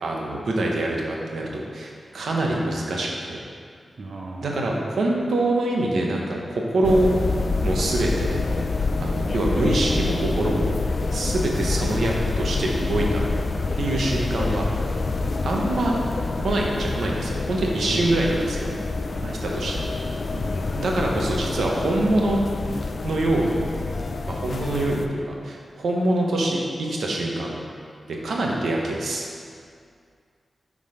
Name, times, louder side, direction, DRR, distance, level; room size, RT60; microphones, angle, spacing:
voice 1, 0.0-3.4 4.4-7.1 7.6-8.4 9.0-10.8 11.1-13.2 13.8-14.7 15.4-16.0 16.4-18.8 19.4-19.9 20.8-22.4 23.0-23.7 24.3-25.0 25.3-27.6 28.1-29.2, right 2 dB, 85° right, -1 dB, 1.0 m, -24 dB
voice 2, 4.0-4.6 9.1-9.3 17.9-18.2 19.1-19.4 20.3-20.7, right 3 dB, 60° right, -2 dB, 0.7 m, -37 dB
sound 1, 6.8-25.1, left 3 dB, 55° left, 0.4 m, -27 dB
7.6 x 3.9 x 5.0 m, 2.2 s
cardioid pair, 65°, 0 cm